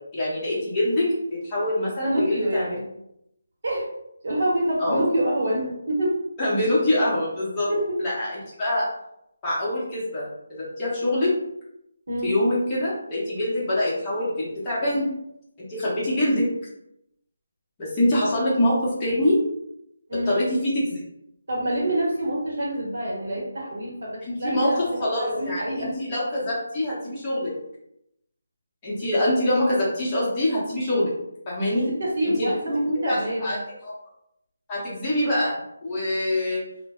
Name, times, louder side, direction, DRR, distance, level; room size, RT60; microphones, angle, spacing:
voice 1, 0.1-2.6 4.8-5.0 6.4-7.7 8.0-8.9 9.4-11.3 12.2-15.1 15.7-16.4 17.8-19.4 20.3-21.0 24.2-27.5 28.8-31.1 31.5-31.9 32.2-32.5 33.0-33.6 33.8-33.9 34.7-36.6, left 1 dB, 15° left, -8 dB, 0.8 m, -24 dB
voice 2, 2.0-2.8 3.6-3.9 4.2-6.2 7.7-8.0 12.1-12.3 20.1-20.3 21.5-25.9 31.7-33.5, right 1 dB, 55° right, -3 dB, 1.0 m, -26 dB
2.1 x 2.1 x 3.5 m, 0.80 s
figure-of-eight pair, 170°, 0 cm